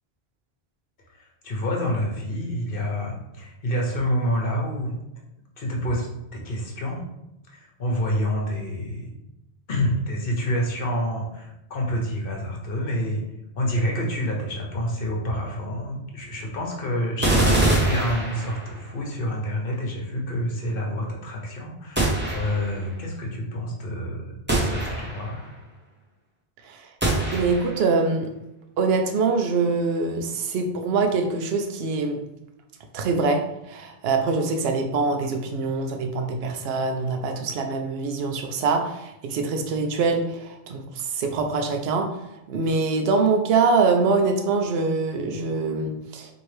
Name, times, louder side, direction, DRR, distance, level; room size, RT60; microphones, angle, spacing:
voice 1, 1.1-4.9 5.6-6.1 6.3-7.1 7.5-9.1 9.7-13.2 13.6-25.6, equal, 60° left, -1 dB, 1.1 m, -28 dB
sound 1, 17.2-18.9 22.0-22.8 24.5-25.4 27.0-27.9, right 2 dB, 10° right, 0.8 m, -24 dB
voice 2, 27.3-28.3 28.8-32.2 32.9-33.4 33.7-42.1 42.5-46.3, right 4 dB, 75° right, 4 dB, 0.8 m, -24 dB
4.3 x 2.8 x 3.2 m, 0.89 s
omnidirectional pair, 1.1 m